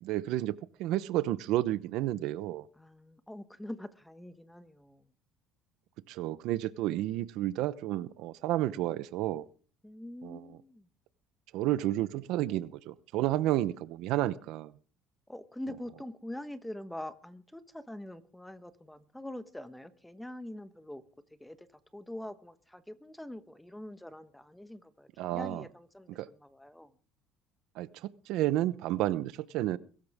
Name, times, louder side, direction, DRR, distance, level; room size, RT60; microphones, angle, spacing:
voice 1, 0.0-2.7 6.1-9.5 10.2-10.6 11.5-14.7 25.2-25.6 26.1-26.3 27.8-29.8, right 14 dB, 75° right, 0.9 m, -31 dB
voice 2, 2.8-5.1 9.8-10.9 15.3-21.0 21.4-21.7 21.9-26.9, left 1 dB, 5° left, 1.2 m, -44 dB
22.5 x 13.5 x 3.6 m
cardioid pair, 130°, 0 cm